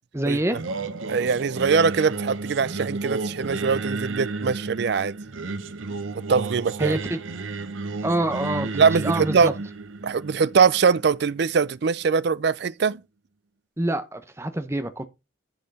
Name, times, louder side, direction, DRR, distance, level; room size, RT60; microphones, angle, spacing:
voice 1, 0.1-0.6 6.8-7.2 8.0-9.5 13.8-15.1, right 1 dB, 15° right, 0.8 m, -26 dB
Singing, 0.6-11.7, right 3 dB, 80° right, 0.9 m, -32 dB
voice 2, 1.1-5.2 6.3-7.0 8.7-9.5 10.0-13.0, right 5 dB, 55° right, 0.4 m, -22 dB
10.5 x 5.7 x 4.1 m
head